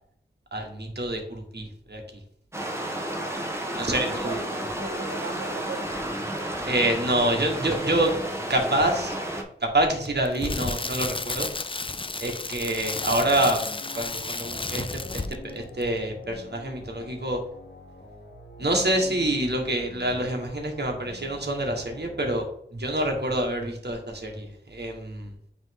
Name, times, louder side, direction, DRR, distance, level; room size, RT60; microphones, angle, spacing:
voice 1, 0.5-2.0 3.7-4.4 6.6-8.1 8.5-9.2 9.6-11.5 12.2-13.6 13.9-14.8 15.1-17.4 18.6-22.4 22.7-25.3, right 1 dB, 60° right, 2 dB, 1.5 m, -26 dB
sound 1, 2.5-9.4, right 1 dB, 15° right, 1.3 m, -32 dB
voice 2, 3.8-6.0, right 3 dB, 85° right, 1 dB, 0.8 m, -38 dB
Crackle, 10.0-15.5 15.8-16.0, left 3 dB, 25° left, 0.4 m, -32 dB
sound 2, 12.9-22.4, left 2 dB, 70° left, 1.5 m, -45 dB
8.8 x 3.1 x 3.8 m, 0.68 s
wide cardioid pair, 40°, 19 cm